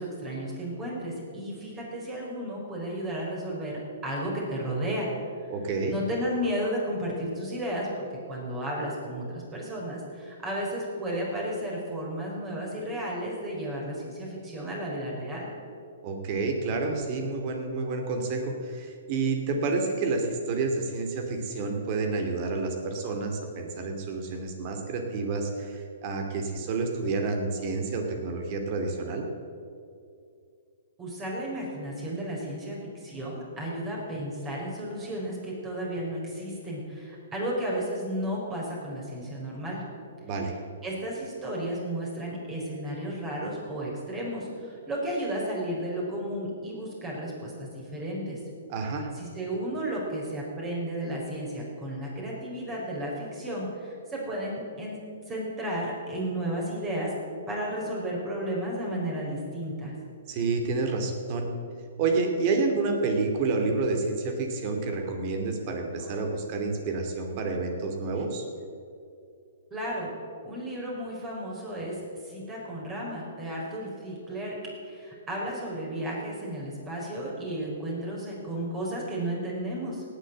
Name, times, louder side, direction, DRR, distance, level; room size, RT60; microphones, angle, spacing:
voice 1, 0.0-5.1 5.9-15.5 31.0-39.8 40.8-48.4 49.1-57.1 57.5-59.9 69.7-70.1 70.4-74.6 74.8-80.0, right 1 dB, 20° right, -3 dB, 4.6 m, -33 dB
voice 2, 5.5-6.0 16.0-29.3 40.2-40.5 48.7-49.1 60.3-61.4 62.0-68.5, right 3 dB, 40° right, 4 dB, 2.7 m, -29 dB
18.0 x 7.7 x 7.6 m, 2.5 s
hypercardioid pair, 125°, 0 cm